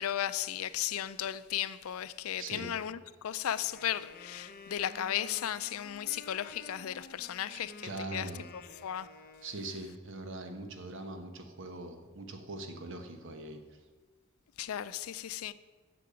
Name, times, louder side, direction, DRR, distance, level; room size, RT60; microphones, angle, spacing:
voice 1, 0.0-8.3 8.8-9.1 14.6-15.5, left 11 dB, 80° left, 0.4 m, -35 dB
voice 2, 2.4-2.7 7.5-8.5 9.4-13.6, right 2 dB, 60° right, 1.1 m, -42 dB
Wind instrument woodwind instrument, 3.6-9.9, left 3 dB, 45° left, 0.7 m, -51 dB
8.5 x 6.9 x 7.0 m
head